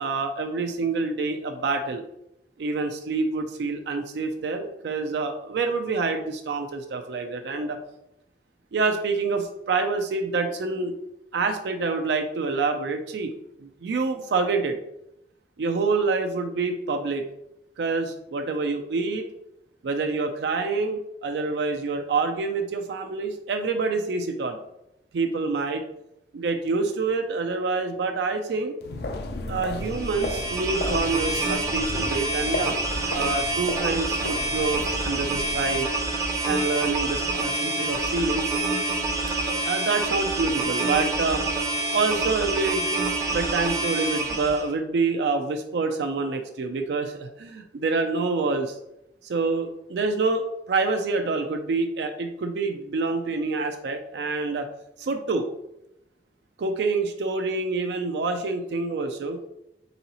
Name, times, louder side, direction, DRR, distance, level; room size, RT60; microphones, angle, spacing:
voice 1, 0.0-2.0 2.6-7.8 8.7-11.0 11.3-13.3 13.6-14.8 15.6-17.3 17.8-19.2 19.8-24.6 25.1-25.8 26.3-28.7 29.5-32.8 33.1-35.9 36.4-38.5 39.6-41.4 41.9-42.8 43.3-48.8 49.2-54.7 55.0-55.5 56.6-59.4, right 3 dB, 75° right, 5 dB, 0.4 m, -27 dB
sound 1, 28.8-35.8, left 1 dB, 65° left, 0.5 m, -34 dB
sound 2, 29.9-44.7, right 2 dB, 20° right, 0.5 m, -27 dB
4.0 x 3.9 x 2.9 m, 0.83 s
head